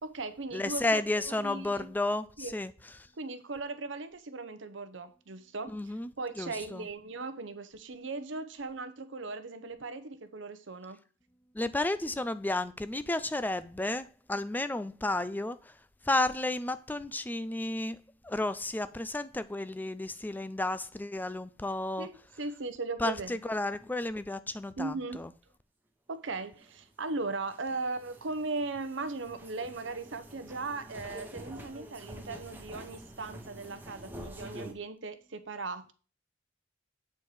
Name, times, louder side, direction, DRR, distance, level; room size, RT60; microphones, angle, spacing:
voice 1, 0.0-1.9 2.4-2.5 3.2-11.0 22.0-23.4 24.8-25.3 26.1-35.9, right 3 dB, 70° right, 0.9 m, -38 dB
voice 2, 0.5-2.7 5.7-6.1 6.4-6.9 11.5-15.7 16.0-18.0 18.2-22.1 23.0-25.3, left 2 dB, 10° left, 0.4 m, -32 dB
sound 1, 26.3-34.7, right 1 dB, 10° right, 1.1 m, -47 dB
8.3 x 4.4 x 4.8 m
head